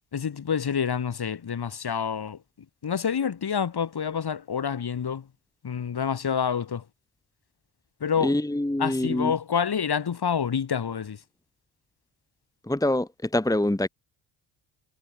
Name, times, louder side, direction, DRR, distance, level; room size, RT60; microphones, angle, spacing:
voice 1, 0.1-2.4 2.8-5.2 5.6-6.8 8.0-8.4 8.8-11.2, left 7 dB, 50° left, 5.2 m, -27 dB
voice 2, 8.2-9.3 12.7-13.9, left 1 dB, 5° left, 1.9 m, -25 dB
cardioid pair, 70°, 49 cm